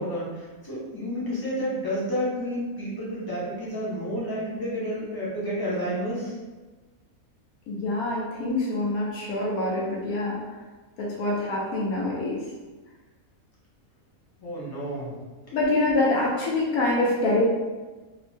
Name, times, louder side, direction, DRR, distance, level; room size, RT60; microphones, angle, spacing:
voice 1, 0.0-6.3 14.4-15.1, equal, 30° left, -8 dB, 0.4 m, -30 dB
voice 2, 7.7-10.4 11.0-12.4 15.5-17.4, left 2 dB, 85° left, -3 dB, 1.1 m, -25 dB
2.9 x 2.0 x 3.1 m, 1.3 s
omnidirectional pair, 1.5 m